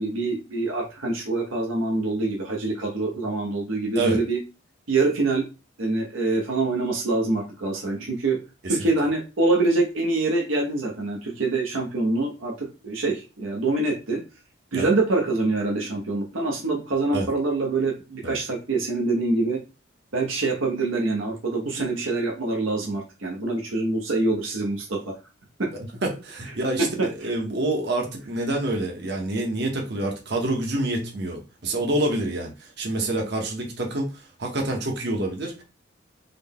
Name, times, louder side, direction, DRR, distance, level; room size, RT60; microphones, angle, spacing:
voice 1, 0.0-4.4 4.9-5.4 5.8-8.4 8.7-14.2 14.7-19.6 20.1-25.2 25.6-25.7 26.8-27.3, right 2 dB, 75° right, 0.7 m, -25 dB
voice 2, 25.8-35.6, right 2 dB, 55° right, 0.9 m, -27 dB
3.8 x 2.1 x 3.5 m
head